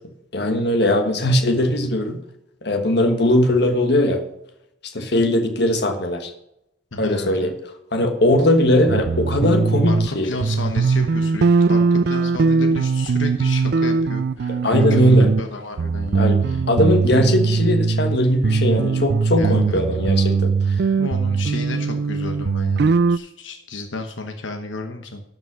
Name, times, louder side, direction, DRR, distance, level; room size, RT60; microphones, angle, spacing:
voice 1, 0.3-2.2 2.6-4.2 4.9-6.3 7.0-7.5 7.9-10.3 14.6-15.3 16.1-16.4 16.7-20.5, left 1 dB, 60° left, 6 dB, 1.4 m, -19 dB
voice 2, 6.9-7.5 9.8-16.6 19.4-19.8 21.0-25.2, left 2 dB, 85° left, 4 dB, 1.1 m, -32 dB
sound 1, 8.9-10.1 10.4-15.5 15.8-18.2 18.4-23.2, right 4 dB, 55° right, 0.4 m, -20 dB
12.0 x 5.3 x 5.6 m, 0.82 s
head